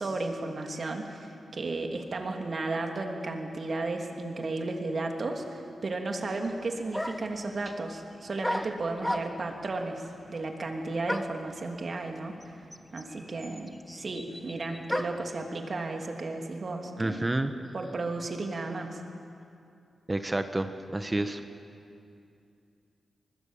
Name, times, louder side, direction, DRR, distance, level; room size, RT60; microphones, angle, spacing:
voice 1, 0.0-12.6 12.9-17.3 17.7-19.0, right 2 dB, 55° right, 3 dB, 2.9 m, -34 dB
sound 1, 6.4-6.5 6.9-7.4 8.4-9.6 11.1-11.5 12.4-12.5 12.7-15.3, left 1 dB, 10° left, 1.4 m, -34 dB
voice 2, 17.0-17.5 20.1-21.4, right 2 dB, 25° right, 8 dB, 1.4 m, -29 dB
24.0 x 21.0 x 7.4 m, 2.6 s
supercardioid pair, 40°, 0 cm